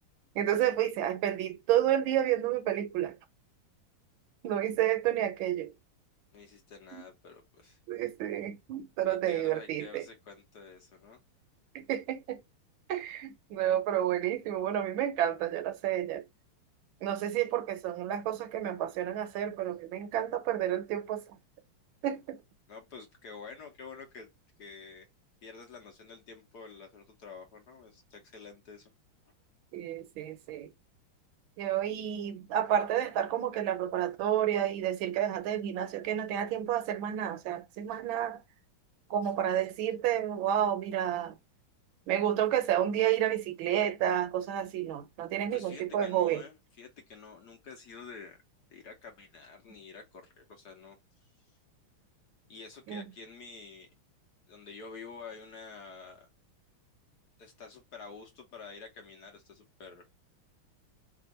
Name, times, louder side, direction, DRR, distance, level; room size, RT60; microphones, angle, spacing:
voice 1, 0.3-3.2 4.4-5.7 7.9-10.1 11.7-12.4 12.9-16.2 17.0-21.4 22.0-22.4 29.7-30.7 31.6-38.4 39.1-41.4 42.1-46.4 52.9-53.0, right 11 dB, 75° right, 1.3 m, -30 dB
voice 2, 6.3-7.8 9.1-11.2 22.7-24.3 24.6-25.1 25.4-28.9 45.5-48.4 48.7-51.0 51.2-51.3 52.5-53.9 54.5-56.3 57.4-60.1, left 5 dB, 60° left, 1.2 m, -48 dB
3.4 x 2.4 x 4.0 m
omnidirectional pair, 2.3 m